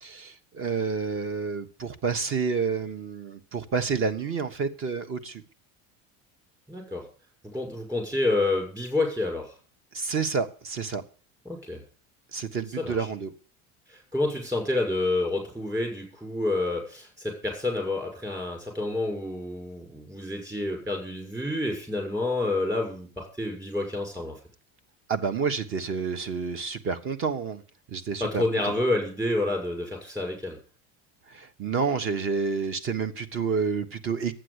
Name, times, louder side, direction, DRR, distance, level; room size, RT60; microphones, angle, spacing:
voice 1, 0.0-5.4 9.9-11.0 12.3-13.3 25.1-27.6 27.9-28.4 31.3-34.3, right 5 dB, 35° right, 1.4 m, -29 dB
voice 2, 6.7-7.1 7.5-9.5 11.4-11.8 12.8-13.1 13.9-24.3 28.2-30.6, left 2 dB, 10° right, 6.3 m, -29 dB
12.0 x 9.3 x 8.2 m
cardioid pair, 155°, 35 cm